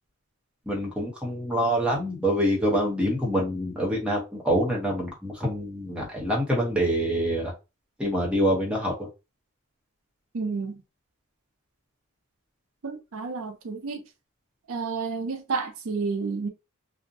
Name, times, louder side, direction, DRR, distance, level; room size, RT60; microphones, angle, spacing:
voice 1, 0.7-7.5 8.0-9.1, equal, 5° right, 0.8 m, -26 dB
voice 2, 10.3-10.8 12.8-14.0 14.7-16.5, right 4 dB, 65° right, 0.5 m, -30 dB
2.5 x 2.1 x 2.6 m
head